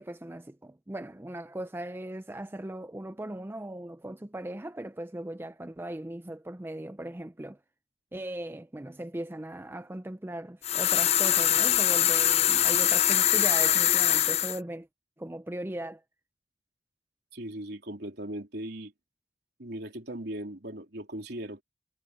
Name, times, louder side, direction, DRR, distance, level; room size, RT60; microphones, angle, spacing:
voice 1, 0.0-7.6 8.1-14.9 15.2-16.0, right 1 dB, 15° right, 0.5 m, -38 dB
sound 1, 10.6-14.6, left 11 dB, 35° left, 0.5 m, -23 dB
voice 2, 17.3-18.9 19.6-21.6, right 1 dB, 60° right, 3.7 m, -38 dB
head